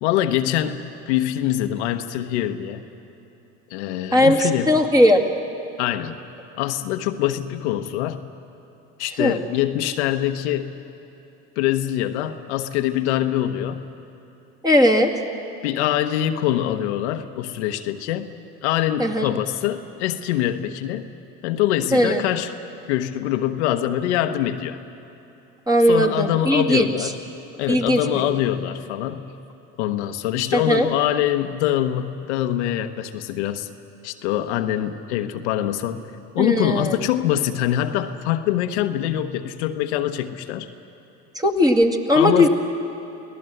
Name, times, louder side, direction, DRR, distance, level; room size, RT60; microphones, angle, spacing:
voice 1, 0.0-2.8 3.7-4.8 5.8-6.2 6.6-8.2 9.0-10.8 11.6-13.8 15.6-18.3 18.6-21.1 21.4-22.5 22.9-24.8 25.8-27.2 27.6-29.3 29.8-33.7 34.0-36.0 36.3-40.7 42.1-42.5, left 12 dB, 80° left, 7 dB, 1.0 m, -24 dB
voice 2, 4.7-5.2 9.2-9.4 14.6-15.1 19.0-19.3 21.9-22.2 25.7-26.9 27.7-28.2 30.5-30.9 36.4-37.0 41.4-42.5, left 1 dB, 10° right, 3 dB, 2.2 m, -18 dB
24.0 x 17.0 x 7.8 m, 3.0 s
hypercardioid pair, 80°, 34 cm